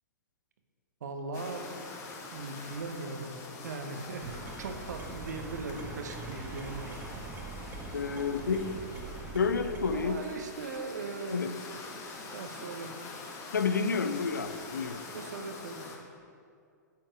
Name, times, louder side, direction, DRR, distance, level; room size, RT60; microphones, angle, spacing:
voice 1, 1.0-1.7 2.3-3.4 3.6-7.2 9.9-11.4 12.3-13.0 15.1-15.9, right 3 dB, 65° right, 5 dB, 1.1 m, -39 dB
sound 1, 1.3-16.0, left 3 dB, 30° left, 1.4 m, -45 dB
sound 2, 4.2-10.1, right 3 dB, 20° right, 1.1 m, -42 dB
voice 2, 7.9-8.8 9.3-10.2 11.3-11.5 13.5-15.0, left 5 dB, 80° left, 10 dB, 0.6 m, -30 dB
9.2 x 7.5 x 4.8 m, 2.3 s
figure-of-eight pair, 110°, 10 cm